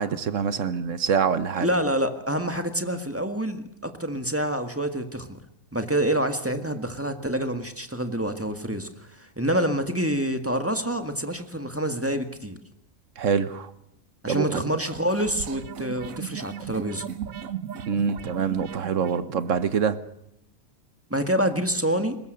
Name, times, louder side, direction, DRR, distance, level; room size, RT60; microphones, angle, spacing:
voice 1, 0.0-1.7 13.2-13.7 14.3-14.6 17.9-20.0, right 6 dB, 70° right, 13 dB, 1.4 m, -25 dB
voice 2, 1.6-5.4 5.7-12.6 14.2-17.0 21.1-22.2, right 1 dB, 10° right, 7 dB, 1.7 m, -27 dB
sound 1, 14.9-19.8, right 9 dB, 90° right, 1.4 m, -37 dB
21.0 x 20.5 x 6.6 m, 0.81 s
omnidirectional pair, 1.4 m